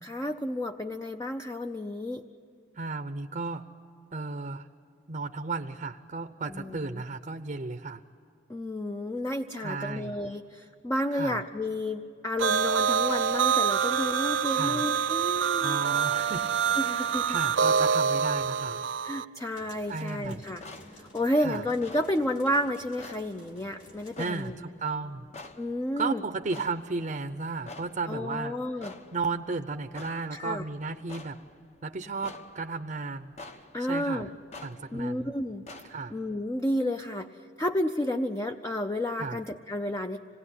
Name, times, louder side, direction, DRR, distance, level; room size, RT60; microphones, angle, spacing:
voice 1, 0.0-2.2 6.5-7.0 8.5-15.8 16.8-17.3 19.0-20.6 20.9-24.5 25.6-26.2 28.1-28.9 30.3-30.6 33.7-34.3 34.9-35.6 36.1-37.3 37.6-40.2, left 1 dB, 15° left, 6 dB, 0.6 m, -31 dB
voice 2, 2.7-3.7 4.1-4.7 5.1-8.0 9.6-10.2 11.1-11.4 14.5-14.9 15.6-16.4 16.8-16.9 17.3-18.8 19.9-20.4 21.4-21.6 24.2-25.3 26.0-28.6 29.1-31.4 31.8-33.3 33.8-34.3 34.6-35.3 35.9-36.2 39.2-39.4, right 4 dB, 45° right, 8 dB, 0.7 m, -34 dB
sound 1, 12.4-19.2, right 7 dB, 90° right, 0.6 m, -26 dB
sound 2, 19.5-24.5, equal, 85° left, 4.1 m, -53 dB
sound 3, 19.8-36.3, left 2 dB, 40° left, 1.1 m, -49 dB
26.5 x 19.0 x 9.9 m, 2.4 s
head